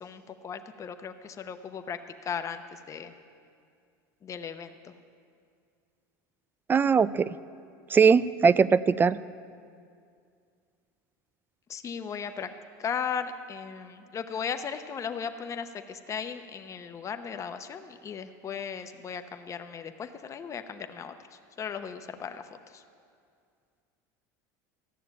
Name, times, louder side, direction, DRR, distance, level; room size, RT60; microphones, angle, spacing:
voice 1, 0.0-3.1 4.2-4.9 11.7-12.5 12.8-22.8, left 7 dB, 30° left, 8 dB, 0.9 m, -37 dB
voice 2, 6.7-7.4 7.9-9.2, right 6 dB, 20° right, 18 dB, 0.3 m, -21 dB
14.0 x 6.9 x 8.8 m, 2.3 s
supercardioid pair, 100°, 10 cm